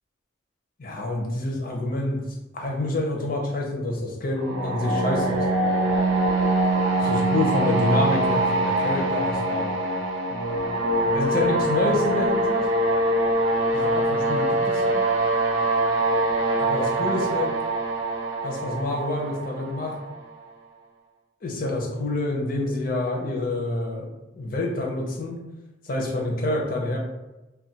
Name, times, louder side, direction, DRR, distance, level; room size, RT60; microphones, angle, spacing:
voice 1, 0.8-2.2 2.5-5.4 7.0-9.7 11.1-12.7 13.7-15.0 16.6-17.5 18.4-20.0 21.4-24.1 24.4-25.4 25.8-27.0, left 2 dB, 45° left, 0 dB, 0.6 m, -27 dB
sound 1, 4.4-20.2, right 2 dB, 80° right, 0.6 m, -23 dB
2.3 x 2.2 x 3.9 m, 1.0 s
head